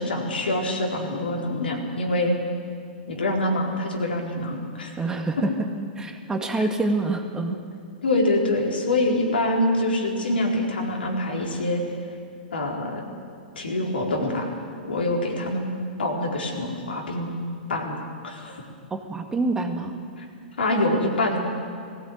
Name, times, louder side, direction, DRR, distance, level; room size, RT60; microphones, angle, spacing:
voice 1, 0.0-2.4 3.1-4.9 6.6-6.7 8.0-11.8 12.5-13.0 13.6-14.5 14.8-15.7 16.0-17.3 17.7-18.6 20.2-20.3 20.6-21.4, left 1 dB, 85° left, 0 dB, 4.5 m, -25 dB
voice 2, 5.0-5.7 6.0-7.6 18.9-20.0, right 2 dB, 10° right, 4 dB, 1.9 m, -26 dB
19.0 x 16.0 x 9.5 m, 2.3 s
hypercardioid pair, 120°, 5 cm